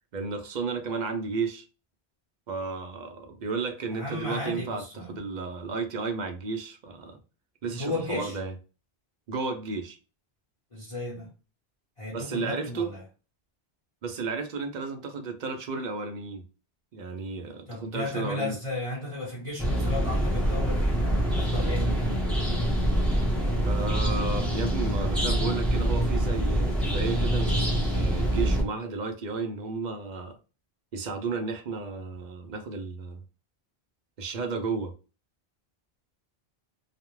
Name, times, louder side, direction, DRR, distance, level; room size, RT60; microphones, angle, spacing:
voice 1, 0.1-1.7 2.5-7.2 7.6-8.5 9.3-10.0 12.1-12.9 14.0-16.4 16.9-18.5 23.6-30.4 30.9-33.2 34.2-34.9, right 4 dB, 55° right, 0.5 m, -33 dB
voice 2, 3.9-5.2 7.7-8.4 10.7-11.3 12.0-13.0 17.7-22.1, left 2 dB, 35° left, 0.8 m, -34 dB
sound 1, 19.6-28.6, right 1 dB, ahead, 0.5 m, -25 dB
2.3 x 2.0 x 3.0 m
omnidirectional pair, 1.1 m